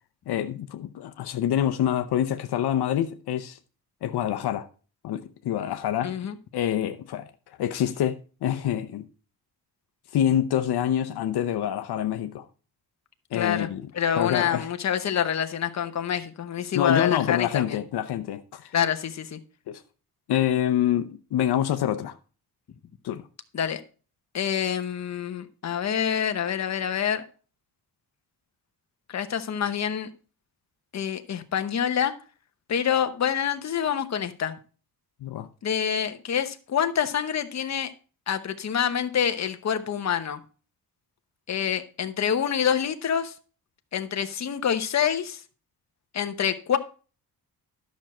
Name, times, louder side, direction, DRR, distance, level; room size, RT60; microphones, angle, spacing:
voice 1, 0.3-3.6 4.0-4.7 5.0-6.1 6.5-7.3 7.6-9.1 10.1-12.4 13.3-13.9 14.1-14.7 16.7-18.7 19.7-19.8 20.3-22.2 23.0-23.3 35.2-35.5, left 10 dB, 80° left, 0.8 m, -26 dB
voice 2, 6.0-6.3 13.3-13.7 13.9-17.8 18.7-19.4 23.5-23.8 24.3-27.2 29.1-30.1 30.9-32.1 32.7-34.5 35.6-37.9 38.3-40.4 41.5-43.3 43.9-45.4 46.1-46.8, left 8 dB, 45° left, 0.9 m, -26 dB
11.5 x 6.3 x 4.3 m
cardioid pair, 130°, 38 cm